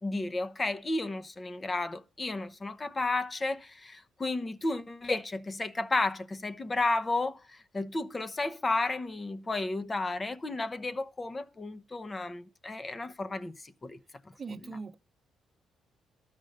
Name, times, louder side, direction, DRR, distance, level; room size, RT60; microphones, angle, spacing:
voice 1, 0.0-14.0, left 2 dB, 25° left, 0.9 m, -32 dB
voice 2, 14.3-14.9, right 4 dB, 40° right, 0.9 m, -40 dB
12.5 x 5.2 x 6.6 m
cardioid pair, 90°, 0 cm